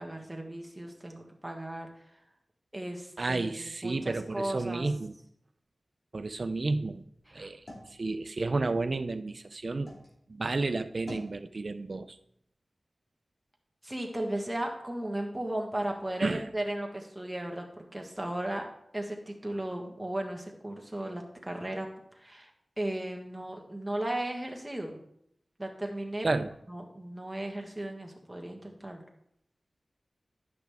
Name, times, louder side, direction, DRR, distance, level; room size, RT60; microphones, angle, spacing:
voice 1, 0.0-1.9 2.7-4.9 7.3-7.5 13.8-17.7 17.9-18.7 18.9-21.9 22.1-22.5 22.8-25.0 25.6-26.3 26.7-29.0, right 1 dB, 10° right, 2 dB, 1.5 m, -36 dB
voice 2, 3.2-5.1 6.1-7.0 7.3-7.6 8.0-9.9 10.3-12.2 16.2-16.4 26.2-26.5, right 3 dB, 55° right, 11 dB, 0.5 m, -31 dB
sound 1, 6.9-10.1 10.5-11.4, left 1 dB, 60° left, 2.5 m, -50 dB
10.5 x 6.0 x 3.5 m, 0.73 s
wide cardioid pair, 70°, 0 cm